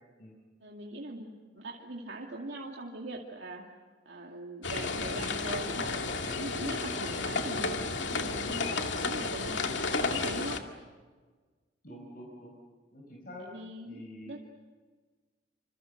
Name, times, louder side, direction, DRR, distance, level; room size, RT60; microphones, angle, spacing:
voice 1, 0.6-3.7 4.1-10.6 13.5-14.4, right 2 dB, 75° right, -1 dB, 2.4 m, -41 dB
sound 1, 4.6-10.6, left 3 dB, 90° left, 2.2 m, -32 dB
voice 2, 11.8-12.5 12.9-13.5 13.9-14.4, left 1 dB, 55° left, -1 dB, 4.9 m, -46 dB
27.0 x 26.5 x 6.6 m, 1.4 s
head